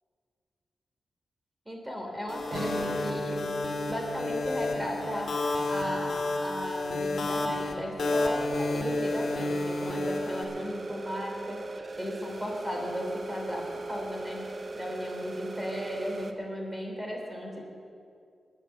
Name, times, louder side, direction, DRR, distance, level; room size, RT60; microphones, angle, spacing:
voice 1, 1.6-3.4 3.9-5.3 5.7-13.6 13.9-14.5 14.7-17.7, equal, 10° right, 0 dB, 3.2 m, -36 dB
sound 1, 2.3-10.4, left 2 dB, 65° left, 2.2 m, -31 dB
Guitar, 2.5-8.3, right 2 dB, 60° right, 3.6 m, -41 dB
sound 2, 8.0-16.3, right 2 dB, 40° right, 0.9 m, -39 dB
19.5 x 6.7 x 7.4 m, 2.3 s
wide cardioid pair, 135°, 0 cm